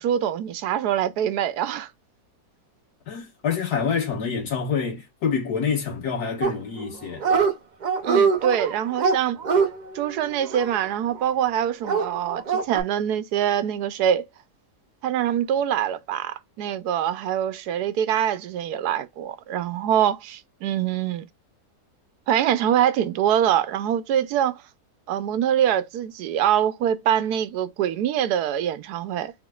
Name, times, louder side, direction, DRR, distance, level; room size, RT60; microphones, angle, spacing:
voice 1, 0.0-1.9 8.0-9.4 9.9-14.3 15.0-21.3 22.3-24.6 25.1-29.3, right 10 dB, 85° right, 1.2 m, -24 dB
voice 2, 3.1-7.2, left 6 dB, 75° left, 1.9 m, -27 dB
Dog, 6.4-6.9 7.2-7.5 7.8-11.3 11.8-12.8, right 5 dB, 60° right, 0.4 m, -23 dB
3.8 x 3.5 x 2.3 m
omnidirectional pair, 1.7 m